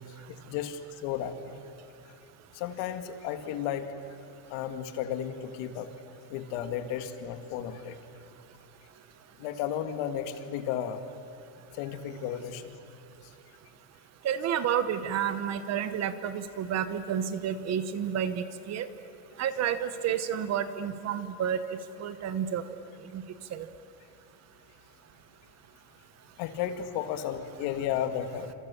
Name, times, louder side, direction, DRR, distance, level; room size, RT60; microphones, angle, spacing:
voice 1, 0.4-1.5 2.5-3.9 4.5-5.9 6.3-8.0 9.4-11.0 11.7-12.8 26.4-28.5, left 9 dB, 60° left, 8 dB, 2.0 m, -33 dB
voice 2, 14.2-18.9 19.4-21.6 22.0-22.6 23.1-23.2 23.5-23.7, right 9 dB, 35° right, 12 dB, 1.0 m, -30 dB
29.0 x 27.0 x 7.0 m, 2.8 s
cardioid pair, 160°, 49 cm